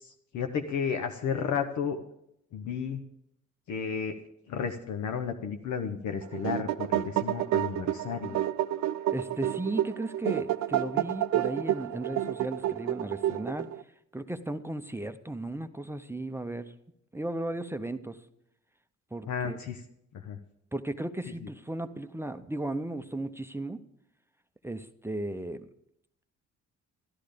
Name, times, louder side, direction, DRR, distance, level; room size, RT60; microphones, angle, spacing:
voice 1, 0.0-2.0 2.5-3.0 3.7-4.2 4.5-8.4 19.3-19.8 20.1-20.4, left 6 dB, 75° left, 5 dB, 1.0 m, -33 dB
sound 1, 6.2-13.8, right 12 dB, 65° right, 0.5 m, -30 dB
voice 2, 9.1-13.7 14.1-16.7 17.1-18.2 19.1-19.6 20.7-23.8 24.6-25.7, right 1 dB, 10° right, 9 dB, 0.7 m, -35 dB
12.0 x 11.5 x 5.1 m, 0.77 s
cardioid pair, 90°, 30 cm